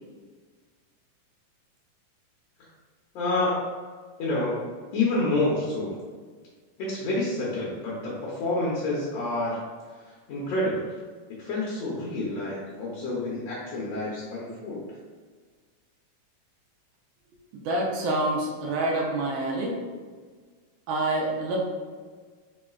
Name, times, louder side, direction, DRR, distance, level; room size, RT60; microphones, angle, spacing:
voice 1, 3.1-3.7 4.2-4.5 4.9-6.0 6.8-9.6 10.3-10.8 11.4-14.9, left 2 dB, 70° left, -6 dB, 1.6 m, -28 dB
voice 2, 17.7-19.7 20.9-21.6, right 2 dB, 80° right, -1 dB, 2.1 m, -27 dB
5.1 x 3.8 x 2.3 m, 1.5 s
omnidirectional pair, 3.8 m